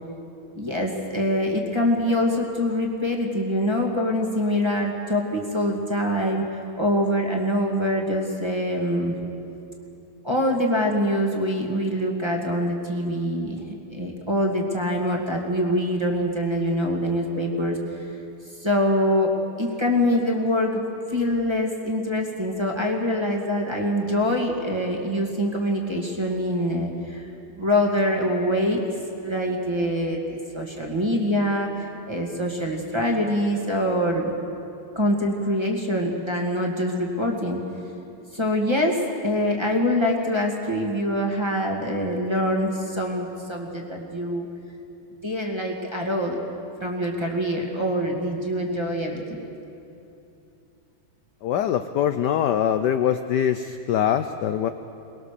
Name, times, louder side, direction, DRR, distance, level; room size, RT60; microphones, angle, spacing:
voice 1, 0.6-9.2 10.2-13.6 13.9-18.1 18.6-19.3 19.6-20.8 21.1-27.3 27.6-28.8 29.2-34.3 35.0-37.6 38.3-44.5 45.2-46.4 46.8-49.5, equal, 15° right, 0 dB, 2.1 m, -24 dB
voice 2, 51.4-54.7, left 9 dB, 70° left, 9 dB, 1.1 m, -23 dB
23.0 x 20.5 x 6.8 m, 2.7 s
omnidirectional pair, 2.4 m